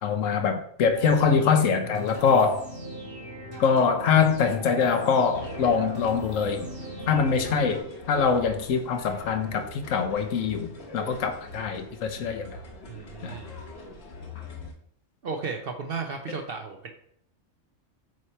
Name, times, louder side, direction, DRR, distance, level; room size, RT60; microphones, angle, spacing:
voice 1, 0.0-2.6 3.6-6.7 7.1-12.5 13.2-13.3, left 6 dB, 80° left, 1.1 m, -23 dB
sound 1, 0.9-7.8, right 1 dB, 75° right, 2.3 m, -39 dB
sound 2, 5.3-14.7, left 3 dB, 55° left, 1.2 m, -42 dB
voice 2, 12.9-13.5 15.2-16.9, right 5 dB, 55° right, 0.8 m, -34 dB
7.4 x 3.0 x 4.4 m
omnidirectional pair, 1.3 m